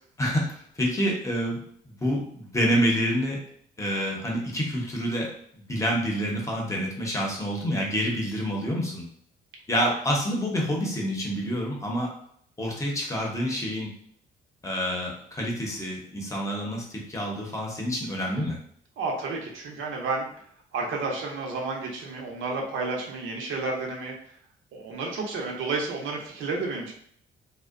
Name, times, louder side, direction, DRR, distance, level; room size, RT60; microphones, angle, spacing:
voice 1, 0.2-3.4 3.8-9.1 9.7-12.1 12.6-13.9 14.6-18.6, equal, 15° left, -1 dB, 0.8 m, -28 dB
voice 2, 19.0-20.3 20.7-24.1 24.7-26.9, right 3 dB, 80° right, 0 dB, 0.7 m, -31 dB
2.6 x 2.1 x 2.5 m, 0.64 s
cardioid pair, 90°, 20 cm